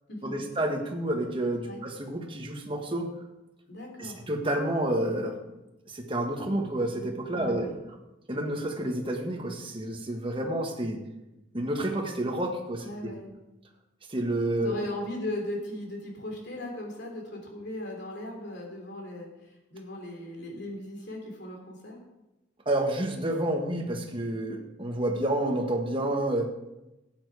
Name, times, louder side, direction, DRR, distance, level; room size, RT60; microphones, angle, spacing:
voice 1, 0.2-3.1 4.0-5.3 5.9-7.7 8.3-11.0 11.5-13.1 14.1-14.7 22.6-26.5, right 1 dB, 25° right, 2 dB, 1.6 m, -29 dB
voice 2, 3.7-4.2 7.3-7.8 12.8-13.3 14.6-22.0, left 1 dB, 55° left, 1 dB, 3.3 m, -38 dB
12.5 x 9.1 x 5.0 m, 0.96 s
head